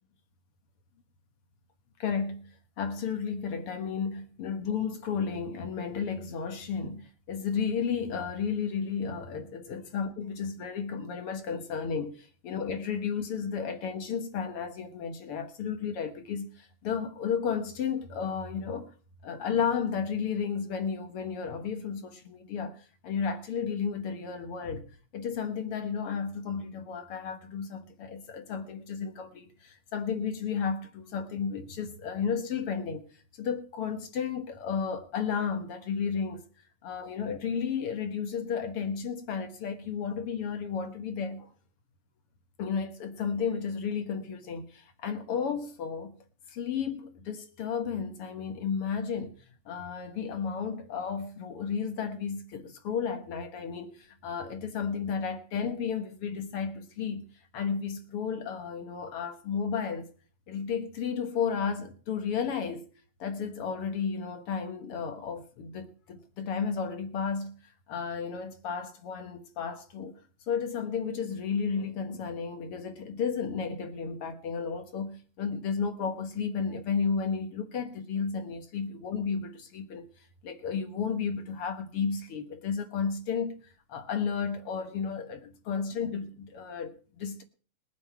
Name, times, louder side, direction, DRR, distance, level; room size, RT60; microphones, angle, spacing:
voice 1, 2.0-18.9 19.2-33.1 33.4-36.4 36.8-41.5 42.6-46.2 46.5-49.4 49.7-57.3 57.5-60.1 60.5-62.9 63.2-67.6 67.9-70.2 70.5-80.1 80.4-83.6 83.9-87.4, left 6 dB, 55° left, 2.0 m, -33 dB
21.5 x 7.6 x 4.6 m
omnidirectional pair, 3.3 m